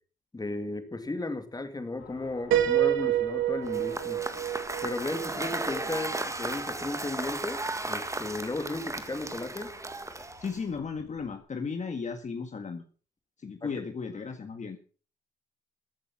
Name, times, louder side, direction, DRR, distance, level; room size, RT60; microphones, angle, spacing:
voice 1, 0.3-4.2 4.8-9.7 13.6-13.7, left 2 dB, 20° left, 8 dB, 2.5 m, -35 dB
sound 1, 2.0-11.4, left 5 dB, 75° left, 6.3 m, -53 dB
Piano, 2.5-6.3, right 12 dB, 80° right, 2.3 m, -28 dB
Cheering / Applause / Crowd, 3.7-10.7, right 2 dB, 15° right, 1.7 m, -35 dB
voice 2, 10.4-12.8 13.4-14.8, left 5 dB, 35° left, 6 dB, 1.7 m, -35 dB
15.0 x 8.4 x 6.1 m, 0.39 s
cardioid pair, 90°, 20 cm